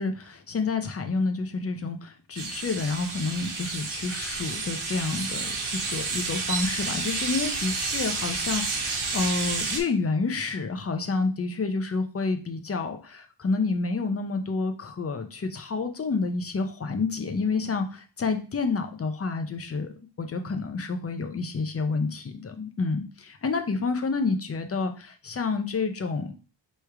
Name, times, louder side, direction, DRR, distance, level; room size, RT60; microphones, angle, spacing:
voice 1, 0.0-5.6 5.9-26.3, left 4 dB, 30° left, 6 dB, 0.6 m, -29 dB
sound 1, 2.3-9.8, right 4 dB, 80° right, 1.1 m, -30 dB
3.4 x 3.2 x 4.8 m, 0.36 s
wide cardioid pair, 140°, 48 cm